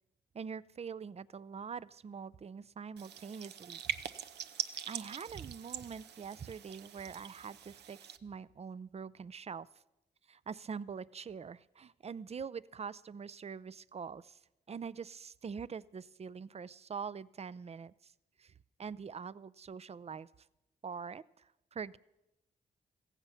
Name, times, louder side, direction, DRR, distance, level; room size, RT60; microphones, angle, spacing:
voice 1, 0.3-4.0 4.9-9.7 10.3-14.4 14.7-18.1 18.4-18.5 18.8-20.3 20.8-22.0, right 6 dB, 40° right, 20 dB, 0.5 m, -44 dB
sound 1, 3.0-8.2, right 9 dB, 85° right, 0.7 m, -43 dB
15.5 x 15.0 x 5.7 m, 0.93 s
cardioid pair, 65°, 17 cm